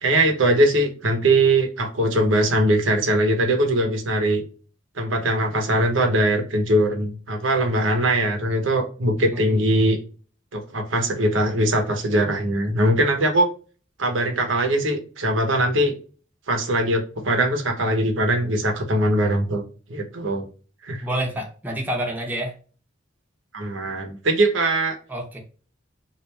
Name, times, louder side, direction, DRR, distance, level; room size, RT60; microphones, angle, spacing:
voice 1, 0.0-4.4 5.0-10.0 10.5-13.5 14.0-15.9 16.5-19.6 19.9-20.5 20.8-21.0 23.5-24.9, right 1 dB, 80° right, 0.9 m, -21 dB
voice 2, 9.3-9.6 21.0-22.5 25.1-25.4, right 1 dB, 10° right, 0.9 m, -28 dB
3.2 x 2.6 x 3.1 m
head